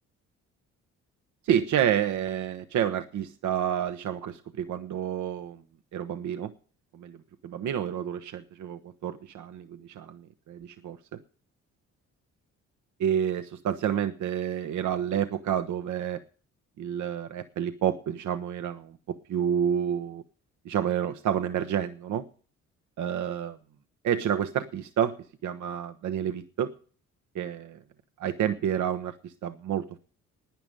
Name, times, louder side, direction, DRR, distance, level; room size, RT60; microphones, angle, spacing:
voice 1, 1.4-5.6 5.9-6.5 6.9-7.2 7.4-11.2 13.0-16.2 16.8-20.2 20.6-22.2 23.0-23.6 24.0-25.2 25.4-26.7 27.3-27.8 28.2-30.0, right 9 dB, 70° right, 9 dB, 1.0 m, -29 dB
11.5 x 9.7 x 8.9 m, 0.43 s
cardioid pair, 90°, 30 cm